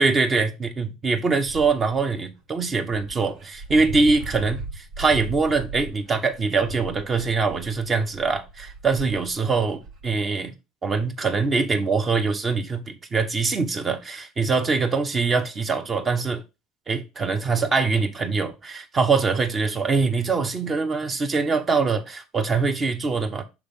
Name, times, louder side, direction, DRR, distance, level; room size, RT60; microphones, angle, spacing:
voice 1, 0.0-10.5 10.8-16.4 16.9-23.4, right 4 dB, 30° right, 1.2 m, -23 dB
Dog, 1.4-2.0 2.6-2.7 2.9-10.2, right 3 dB, 55° right, 1.6 m, -37 dB
6.0 x 3.4 x 5.6 m
figure-of-eight pair, 65°, 0 cm